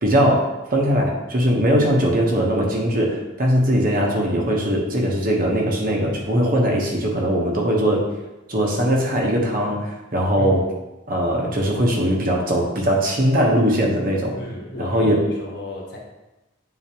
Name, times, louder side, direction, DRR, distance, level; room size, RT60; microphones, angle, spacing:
voice 1, 0.0-8.1 8.5-10.7 11.1-14.4 14.8-15.3, equal, 45° right, 0 dB, 1.0 m, -20 dB
voice 2, 14.4-16.0, left 1 dB, 55° left, -2 dB, 1.2 m, -33 dB
8.4 x 4.0 x 2.9 m, 1.0 s
head